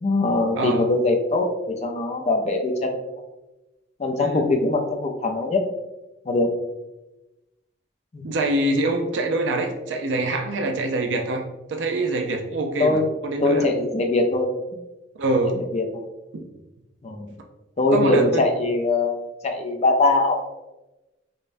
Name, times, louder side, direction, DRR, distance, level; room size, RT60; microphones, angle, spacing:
voice 1, 0.0-3.0 4.0-5.6 6.3-6.5 8.1-8.2 12.8-13.1 13.4-14.5 15.6-15.9 17.0-17.3 17.8-20.5, left 2 dB, 40° left, 3 dB, 0.5 m, -22 dB
voice 2, 0.6-0.9 4.2-4.5 8.2-11.4 11.7-13.7 15.2-15.6 16.3-16.4 17.9-18.4, right 2 dB, 90° right, 3 dB, 0.4 m, -24 dB
5.2 x 2.1 x 2.5 m, 1.0 s
head